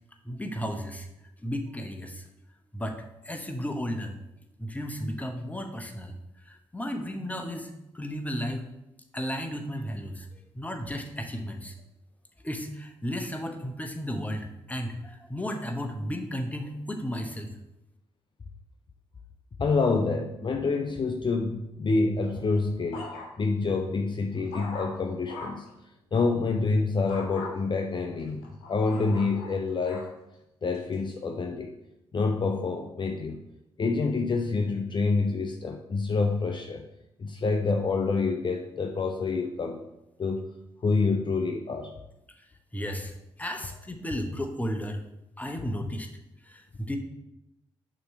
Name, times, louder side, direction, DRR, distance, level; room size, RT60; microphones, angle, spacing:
voice 1, 0.2-1.1 1.4-2.3 2.7-4.2 4.6-6.1 6.5-8.6 9.1-11.7 12.4-17.5 42.7-45.0 45.4-46.1 46.4-47.0, equal, 10° left, 5 dB, 1.1 m, -34 dB
voice 2, 19.6-23.1 23.4-25.7 26.1-30.1 30.6-31.7 32.1-33.4 33.8-36.9 37.2-39.9 40.2-40.5 40.8-42.0, left 4 dB, 40° left, 3 dB, 0.6 m, -27 dB
sound 1, 22.2-23.6 24.0-25.7 27.1-27.5 28.2-30.1 30.7-31.1, left 3 dB, 85° left, 0.8 m, -42 dB
6.7 x 3.0 x 5.6 m, 0.89 s
hypercardioid pair, 40°, 12 cm